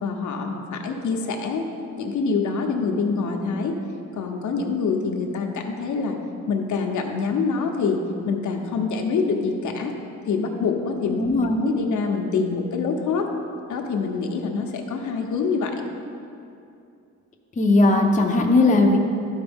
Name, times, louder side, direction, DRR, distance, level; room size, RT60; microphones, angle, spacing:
voice 1, 0.0-1.7 2.0-3.8 4.2-6.2 6.5-8.0 8.3-9.9 10.3-11.3 11.6-13.3 13.7-15.7, left 5 dB, 75° left, 2 dB, 0.8 m, -25 dB
voice 2, 11.1-11.6 17.6-19.0, left 2 dB, 25° left, 1 dB, 0.6 m, -18 dB
13.0 x 4.4 x 3.5 m, 2.5 s
wide cardioid pair, 150°, 30 cm